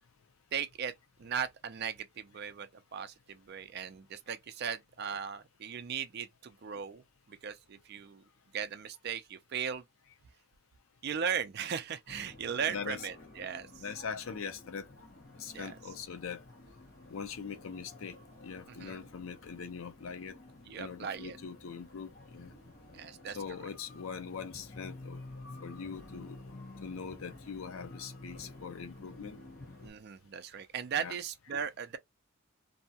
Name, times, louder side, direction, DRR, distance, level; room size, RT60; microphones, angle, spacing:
voice 1, 0.5-0.9 1.2-8.2 8.5-9.8 11.0-13.8 15.5-15.8 18.7-19.0 20.7-21.4 22.9-23.4 29.8-32.0, right 7 dB, 50° right, 0.4 m, -38 dB
sound 1, 12.1-29.9, left 2 dB, 45° left, 0.9 m, -51 dB
voice 2, 12.7-13.1 13.8-14.9 15.4-16.4 17.1-18.2 18.4-20.4 20.8-22.5 23.3-25.2 25.6-26.4 26.8-29.4 30.9-31.2, left 6 dB, 70° left, 0.5 m, -42 dB
2.7 x 2.1 x 2.7 m
head